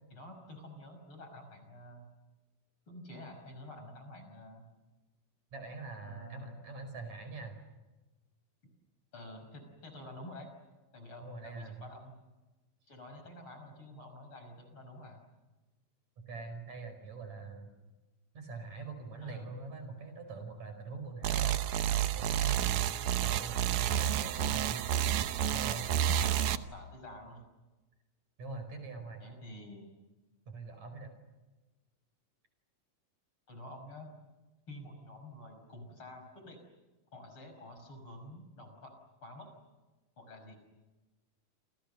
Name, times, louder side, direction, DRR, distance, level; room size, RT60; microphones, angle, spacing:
voice 1, 0.1-2.0 2.9-4.6 6.0-6.6 9.1-10.5 10.9-12.2 12.9-15.2 19.2-19.6 25.4-27.4 29.2-29.9 33.5-34.1 34.7-36.6 37.1-38.9 39.2-39.5 40.2-40.6, left 1 dB, 35° left, 6 dB, 6.2 m, -49 dB
voice 2, 5.5-7.6 11.2-11.8 16.3-17.7 18.3-21.6 22.1-24.8 25.5-25.8 28.4-29.2 30.5-31.1, right 3 dB, 50° right, 7 dB, 6.3 m, -43 dB
sound 1, 21.2-26.6, right 10 dB, 70° right, 2.3 m, -30 dB
29.0 x 28.5 x 6.7 m, 1.1 s
omnidirectional pair, 4.1 m